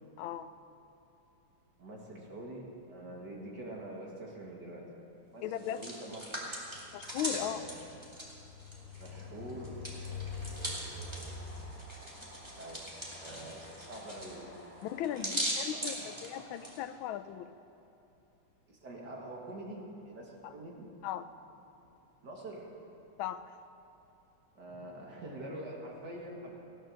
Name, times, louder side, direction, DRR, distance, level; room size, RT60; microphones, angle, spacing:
voice 1, 0.2-0.5 5.4-5.8 6.9-7.6 14.8-17.5 20.4-20.5 21.0-21.2 23.2-23.6, left 11 dB, 85° left, 12 dB, 1.4 m, -37 dB
voice 2, 1.8-4.9 5.3-6.3 7.3-7.8 9.0-9.8 12.6-12.9 13.2-14.5 14.9-16.7 18.7-20.9 22.2-22.7 24.5-26.5, right 1 dB, 55° right, -2 dB, 2.6 m, -45 dB
Hands, 5.5-9.2 9.5-16.8, equal, 15° right, 2.4 m, -40 dB
Train, 6.7-15.1, left 3 dB, 25° left, 2.5 m, -46 dB
16.0 x 11.0 x 6.3 m, 2.9 s
omnidirectional pair, 2.2 m